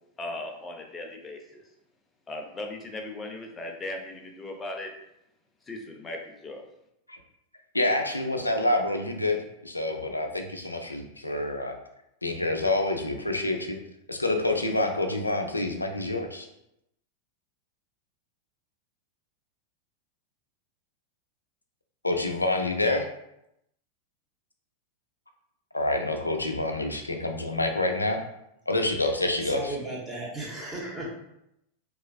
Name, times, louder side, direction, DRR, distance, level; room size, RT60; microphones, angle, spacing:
voice 1, 0.2-1.6 2.3-4.9 5.7-6.6, left 2 dB, 20° left, 3 dB, 0.5 m, -38 dB
voice 2, 7.7-11.8 12.2-13.8 14.1-16.5 22.0-23.0 25.7-28.2 28.7-29.7, left 2 dB, 85° left, 4 dB, 0.4 m, -27 dB
voice 3, 29.4-31.1, right 1 dB, 10° right, -4 dB, 0.9 m, -35 dB
3.9 x 2.4 x 2.3 m, 0.81 s
figure-of-eight pair, 90°, 0 cm